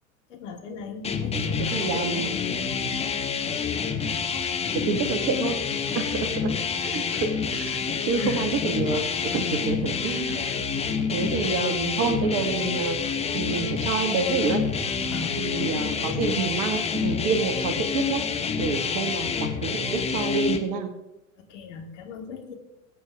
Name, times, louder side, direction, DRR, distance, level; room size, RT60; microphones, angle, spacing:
voice 1, 0.3-2.4 5.9-6.0 8.2-8.5 15.1-15.3 15.6-16.1 21.5-22.5, left 5 dB, 60° left, 2 dB, 2.5 m, -37 dB
sound 1, 1.0-20.6, left 6 dB, 15° left, 1.1 m, -28 dB
voice 2, 1.6-2.3 4.9-5.6 5.9-6.5 6.8-10.6 11.1-14.6 15.4-18.2 18.6-20.9, right 4 dB, 40° right, 8 dB, 1.8 m, -28 dB
20.5 x 8.7 x 3.6 m, 0.91 s
figure-of-eight pair, 85°, 42 cm